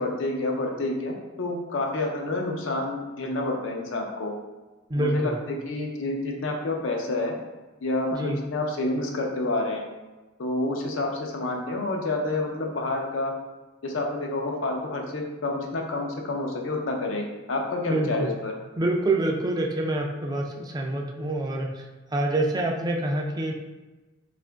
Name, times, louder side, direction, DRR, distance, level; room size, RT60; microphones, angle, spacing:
voice 1, 0.0-4.3 5.0-7.3 7.8-9.8 10.4-13.3 13.8-18.5, left 2 dB, 90° left, 1 dB, 0.5 m, -29 dB
voice 2, 4.9-5.4 8.1-8.4 17.9-18.3 18.8-21.7 22.1-23.5, right 1 dB, 20° right, 2 dB, 0.3 m, -26 dB
2.8 x 2.5 x 3.3 m, 1.2 s
head